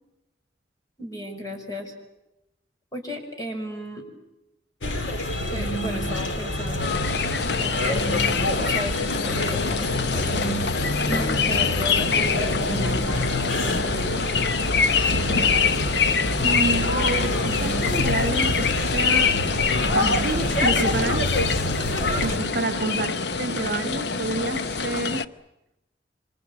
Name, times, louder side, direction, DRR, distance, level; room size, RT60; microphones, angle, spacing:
voice 1, 1.0-1.9 2.9-4.0 5.5-6.9 7.5-8.1 8.6-10.4 11.1-13.0 13.4-14.3 22.0-22.3, equal, 20° left, 5.9 m, -34 dB
sound 1, 4.8-22.4, left 1 dB, 85° left, 2.9 m, -26 dB
sound 2, 6.8-25.2, left 5 dB, 60° left, 0.9 m, -25 dB
voice 2, 16.4-19.3 19.9-21.3 22.2-25.3, right 3 dB, 55° right, 1.5 m, -29 dB
26.5 x 26.0 x 8.0 m
head